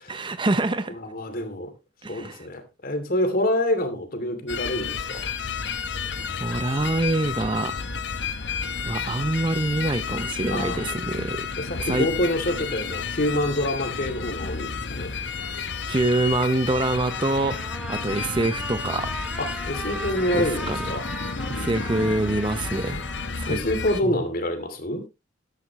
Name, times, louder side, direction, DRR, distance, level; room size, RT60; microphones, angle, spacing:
voice 1, 0.0-1.0 2.0-2.5 6.4-7.8 8.8-11.5 11.8-12.1 15.9-19.1 20.3-20.9 21.5-23.0 23.4-23.6 24.0-24.2, right 2 dB, 25° right, 0.7 m, -25 dB
voice 2, 0.9-1.7 2.1-5.3 10.5-10.9 11.2-11.3 11.6-15.1 19.4-21.0 23.5-25.0, left 1 dB, 50° left, 2.7 m, -27 dB
sound 1, 4.5-24.0, left 5 dB, 65° left, 1.1 m, -31 dB
Trumpet, 16.8-23.3, equal, 5° right, 2.4 m, -37 dB
14.0 x 11.0 x 3.1 m
head